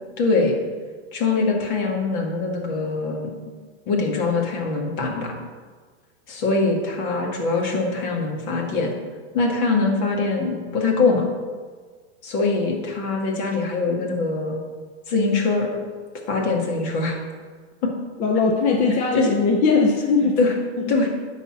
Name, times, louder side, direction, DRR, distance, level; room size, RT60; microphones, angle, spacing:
voice 1, 0.2-0.6 1.1-3.3 3.9-5.4 6.3-8.9 9.3-11.3 12.2-14.6 15.1-15.8 16.3-17.2 19.1-19.3 20.4-20.5 20.9-21.1, left 3 dB, 45° left, 1 dB, 2.0 m, -22 dB
voice 2, 18.2-20.3 20.9-21.0, left 4 dB, 20° left, 1 dB, 0.6 m, -19 dB
10.0 x 4.2 x 6.4 m, 1.5 s
supercardioid pair, 145°, 33 cm